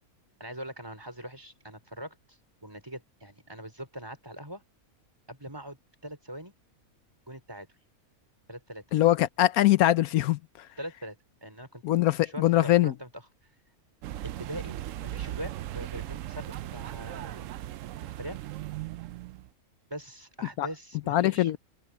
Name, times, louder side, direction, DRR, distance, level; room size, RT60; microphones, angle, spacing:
voice 1, 0.4-4.6 5.3-6.5 7.3-7.7 8.5-8.8 10.8-11.2 11.4-13.1 14.2-14.8 15.0-17.5 18.0-18.4 19.9-21.6, equal, 15° right, 4.2 m, -42 dB
voice 2, 8.9-10.4 11.8-12.9 20.6-20.7 21.1-21.6, left 14 dB, 80° left, 1.1 m, -22 dB
sound 1, 14.0-19.5, right 13 dB, 70° right, 0.9 m, -38 dB
omnidirectional pair, 1.5 m